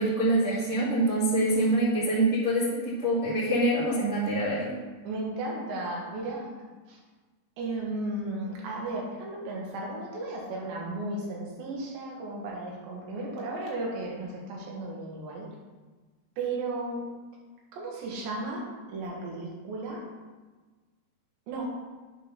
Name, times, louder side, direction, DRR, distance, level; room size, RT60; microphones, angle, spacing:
voice 1, 0.0-4.8, right 1 dB, 40° right, -11 dB, 1.1 m, -25 dB
voice 2, 5.1-6.5 6.9-7.0 7.6-15.5 16.4-17.1 17.7-18.6 18.9-20.0 21.5-21.8, right 2 dB, 75° right, -3 dB, 3.6 m, -34 dB
9.2 x 3.8 x 5.7 m, 1.3 s
omnidirectional pair, 5.3 m